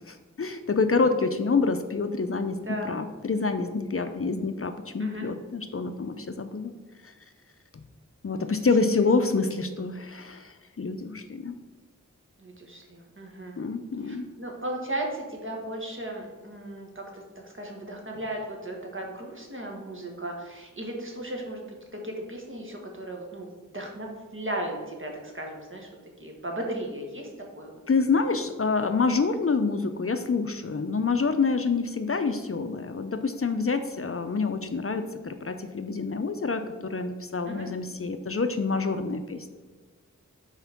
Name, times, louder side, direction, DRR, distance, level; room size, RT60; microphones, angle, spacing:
voice 1, 0.1-6.7 7.0-7.1 8.2-11.6 13.6-14.3 27.9-39.5, left 4 dB, 45° left, 8 dB, 0.5 m, -27 dB
voice 2, 8.8-9.1 12.4-13.6 14.0-21.7 21.9-23.5 23.7-25.9 26.2-27.3 27.5-27.7 29.0-29.1 37.5-37.7, right 1 dB, 40° right, 0 dB, 1.6 m, -36 dB
5.7 x 4.4 x 5.9 m, 1.3 s
wide cardioid pair, 50°, 31 cm